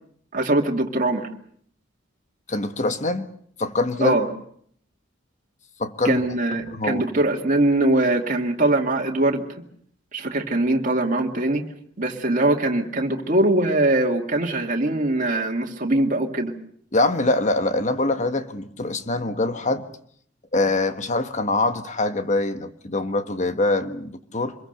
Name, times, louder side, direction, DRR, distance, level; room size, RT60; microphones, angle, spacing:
voice 1, 0.3-1.3 4.0-4.3 6.0-9.4 10.1-11.6 12.0-16.5, right 2 dB, 40° right, 2.3 m, -22 dB
voice 2, 2.5-3.3 3.6-4.2 5.8-6.2 6.7-7.0 16.9-19.8 20.5-24.6, left 2 dB, 40° left, 1.4 m, -24 dB
26.0 x 22.0 x 6.7 m
head